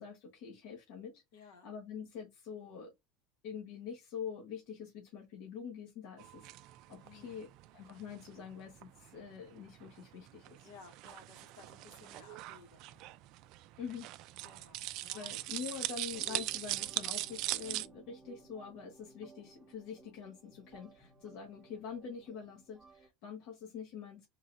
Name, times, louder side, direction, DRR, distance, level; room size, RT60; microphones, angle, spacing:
voice 1, 0.0-1.2 1.6-2.9 3.4-6.5 6.9-7.5 7.7-10.7 13.8-14.1 15.1-24.3, left 7 dB, 60° left, 1.2 m, -45 dB
voice 2, 1.3-1.7 7.0-7.5 10.6-13.0 14.4-15.3, left 5 dB, 80° left, 1.8 m, -57 dB
sound 1, 6.2-17.9, right 16 dB, 50° right, 0.3 m, -41 dB
sound 2, 16.1-23.1, right 2 dB, 5° right, 0.9 m, -58 dB
3.7 x 2.6 x 4.4 m
cardioid pair, 160°, 0 cm